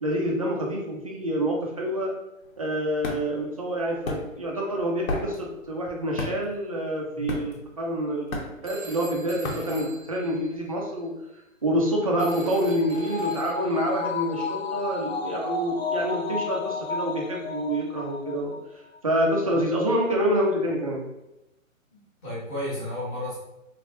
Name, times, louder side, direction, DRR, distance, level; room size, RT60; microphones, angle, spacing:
voice 1, 0.0-2.1 2.6-11.1 11.6-18.5 19.0-21.1, equal, 30° right, -1 dB, 0.4 m, -27 dB
sound 1, 2.4-10.6, left 2 dB, 90° left, 0.9 m, -35 dB
Telephone, 8.6-11.0 12.2-13.9, right 2 dB, 80° right, 0.9 m, -42 dB
sound 2, 11.9-18.6 19.0-19.1, left 4 dB, 50° left, 0.5 m, -32 dB
voice 2, 21.9-23.4, left 1 dB, 15° left, -9 dB, 0.7 m, -33 dB
3.2 x 2.5 x 2.8 m, 0.90 s
hypercardioid pair, 150°, 41 cm